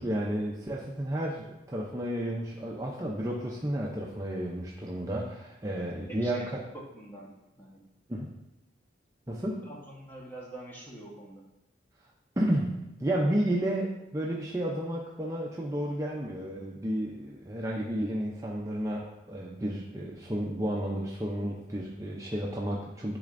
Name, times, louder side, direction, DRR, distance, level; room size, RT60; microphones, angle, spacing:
voice 1, 0.0-6.6 8.1-8.3 9.3-9.7 12.4-23.2, right 1 dB, 15° right, -3 dB, 0.5 m, -32 dB
voice 2, 5.7-7.8 9.6-11.4, right 1 dB, 10° left, -4 dB, 1.2 m, -45 dB
10.5 x 4.2 x 2.5 m, 0.94 s
head